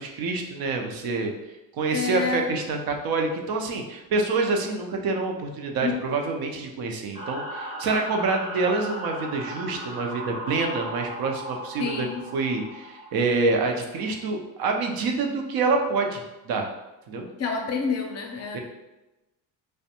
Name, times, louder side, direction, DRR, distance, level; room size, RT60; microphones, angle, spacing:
voice 1, 0.0-1.3 1.8-12.1 12.3-16.7 17.1-17.3 18.5-18.6, right 3 dB, 65° right, 3 dB, 0.5 m, -27 dB
voice 2, 1.9-2.5 5.8-6.0 11.8-12.2 17.4-18.6, left 5 dB, 40° left, 2 dB, 0.5 m, -28 dB
sound 1, 7.1-14.1, right 1 dB, 15° right, 0.7 m, -37 dB
2.5 x 2.2 x 2.8 m, 1.0 s
cardioid pair, 90°, 39 cm